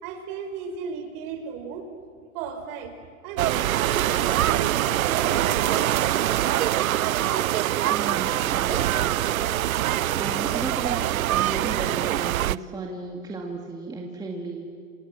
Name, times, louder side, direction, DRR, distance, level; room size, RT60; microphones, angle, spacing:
voice 1, 0.0-1.9 2.3-3.0 3.2-4.7 5.0-6.8, right 6 dB, 40° right, 7 dB, 4.7 m, -34 dB
sound 1, 3.4-12.6, right 13 dB, 80° right, 0.7 m, -24 dB
sound 2, 4.0-11.9, left 5 dB, 65° left, 7.1 m, -47 dB
voice 2, 7.9-9.4 9.9-14.8, right 3 dB, 10° right, 0 dB, 2.1 m, -35 dB
29.5 x 26.5 x 7.4 m, 2.2 s
hypercardioid pair, 145°, 42 cm